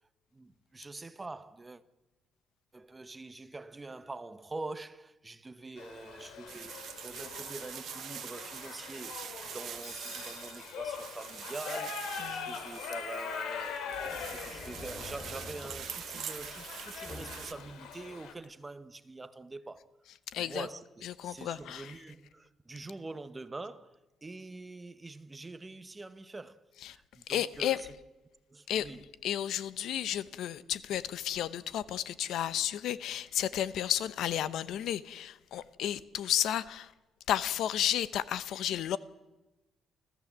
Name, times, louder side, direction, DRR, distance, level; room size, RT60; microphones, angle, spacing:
voice 1, 0.3-1.8 2.7-19.9 20.3-20.8 21.2-27.9 28.5-29.0, right 3 dB, 15° right, 0.9 m, -45 dB
Shout / Livestock farm animals working animals, 5.8-18.3, left 6 dB, 90° left, 2.6 m, -42 dB
sound 1, 6.5-17.5, right 9 dB, 55° right, 1.3 m, -44 dB
voice 2, 12.2-12.5 20.3-20.7 21.0-22.0 26.8-27.0 27.3-27.8 28.7-28.9 29.2-36.9 37.3-39.0, left 11 dB, 70° left, 0.8 m, -32 dB
sound 2, 13.8-17.8, left 2 dB, 30° left, 2.8 m, -47 dB
28.5 x 14.5 x 7.4 m
cardioid pair, 150°, 0 cm